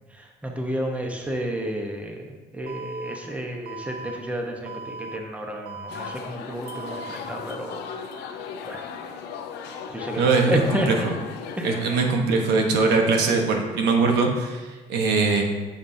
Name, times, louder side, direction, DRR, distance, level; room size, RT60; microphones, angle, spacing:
voice 1, 0.1-8.3 8.6-8.8 9.9-11.1 11.6-11.7, equal, 10° right, 2 dB, 1.0 m, -31 dB
Alarm, 2.7-3.2 3.7-4.2 4.7-5.2 5.7-6.2 6.7-7.2, right 4 dB, 65° right, 0.6 m, -38 dB
sound 1, 5.9-12.2, left 6 dB, 85° left, 0.7 m, -37 dB
voice 2, 10.2-10.6 10.9-11.1 11.6-15.4, right 4 dB, 85° right, 3 dB, 1.2 m, -21 dB
9.0 x 7.0 x 2.7 m, 1.2 s
cardioid pair, 110°, 17 cm